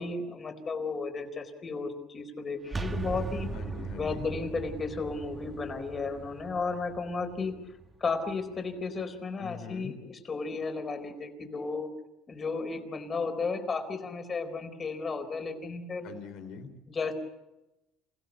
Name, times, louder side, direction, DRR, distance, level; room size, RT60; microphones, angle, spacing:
voice 1, 0.0-3.5 4.0-7.5 8.0-11.9 12.3-16.1 16.9-17.1, left 4 dB, 30° left, 6 dB, 4.3 m, -34 dB
sound 1, 2.7-8.4, right 4 dB, 20° right, 1.9 m, -39 dB
voice 2, 3.5-4.3 9.4-9.9 16.0-16.7, left 6 dB, 65° left, 8 dB, 3.9 m, -42 dB
28.5 x 16.5 x 8.3 m, 0.97 s
cardioid pair, 110°, 0 cm